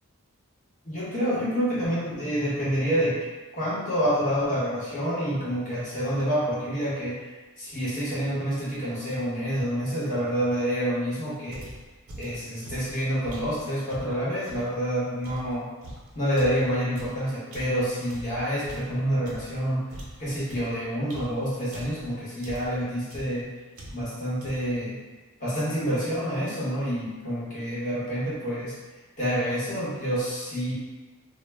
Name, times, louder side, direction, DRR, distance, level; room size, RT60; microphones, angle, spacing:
voice 1, 0.8-3.2 3.5-7.3 7.6-11.7 12.2-15.7 16.2-19.9 20.2-23.5 23.9-25.0 25.4-28.7 29.2-30.7, equal, 35° left, -9 dB, 0.9 m, -28 dB
sound 1, 11.5-14.7 15.2-19.6 19.9-22.1 22.4-22.8 23.1-23.4 23.7-24.2 24.4-24.8, right 1 dB, 85° right, 0.6 m, -42 dB
2.1 x 2.1 x 3.3 m, 1.2 s
head